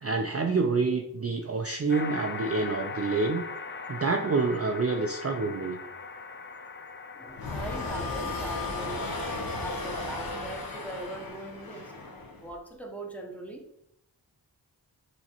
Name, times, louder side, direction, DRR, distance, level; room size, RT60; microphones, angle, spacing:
voice 1, 0.0-3.4 3.9-5.8, right 4 dB, 35° right, 3 dB, 0.4 m, -27 dB
sound 1, 1.9-9.7, left 5 dB, 25° left, 0.4 m, -40 dB
voice 2, 7.1-9.1 9.6-11.9 12.4-13.7, right 1 dB, 5° left, 1 dB, 0.8 m, -40 dB
sound 2, 7.4-12.5, left 2 dB, 50° left, 0.9 m, -35 dB
5.8 x 3.0 x 2.9 m, 0.76 s
wide cardioid pair, 65°, 44 cm